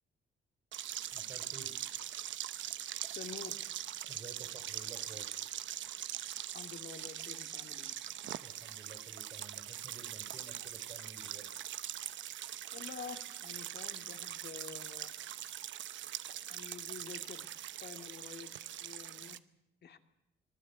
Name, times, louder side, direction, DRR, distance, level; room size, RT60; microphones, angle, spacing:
sound 1, 0.7-19.4, right 12 dB, 70° right, 0.9 m, -42 dB
voice 1, 1.1-1.7 4.1-5.4 8.4-11.5, right 3 dB, 35° right, 4 dB, 4.1 m, -52 dB
voice 2, 3.1-3.6 6.5-7.9 12.7-15.1 16.5-17.5 17.8-18.5 18.8-19.4 19.8-20.0, left 6 dB, 55° left, 8 dB, 2.3 m, -48 dB
25.5 x 19.0 x 8.2 m, 0.83 s
cardioid pair, 90°, 20 cm